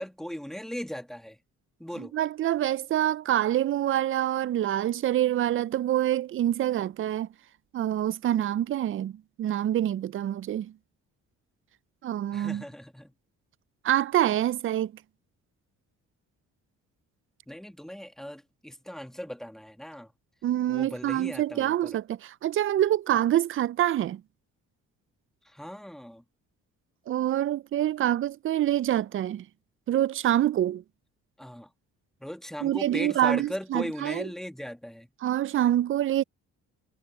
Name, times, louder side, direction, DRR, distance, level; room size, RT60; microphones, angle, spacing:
voice 1, 0.0-1.4 1.8-2.1 12.3-13.1 17.5-20.1 20.7-21.9 25.5-26.2 31.4-31.7 32.2-35.1, equal, ahead, 2.0 m, -38 dB
voice 2, 2.0-7.3 7.7-10.7 12.0-12.6 13.8-14.9 20.4-24.2 27.1-29.5 29.9-30.8 32.6-34.3 35.2-36.2, right 12 dB, 45° right, 0.4 m, -26 dB
cardioid pair, 90°, 30 cm